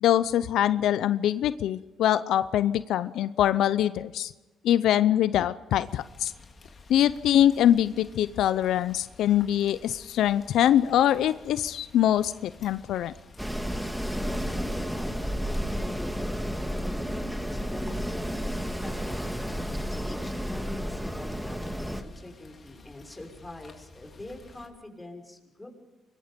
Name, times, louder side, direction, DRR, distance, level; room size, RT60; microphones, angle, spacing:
voice 1, 0.0-4.3 4.6-6.3 6.9-13.1, left 11 dB, 80° left, 14 dB, 0.6 m, -23 dB
Rain, 5.8-24.7, left 3 dB, 40° left, 3.8 m, -52 dB
Wind, 13.4-22.0, equal, 5° right, 2.0 m, -31 dB
voice 2, 14.4-19.5 19.9-25.7, left 2 dB, 15° left, 3 dB, 6.2 m, -45 dB
26.0 x 22.0 x 5.2 m, 1.2 s
cardioid pair, 90°, 0 cm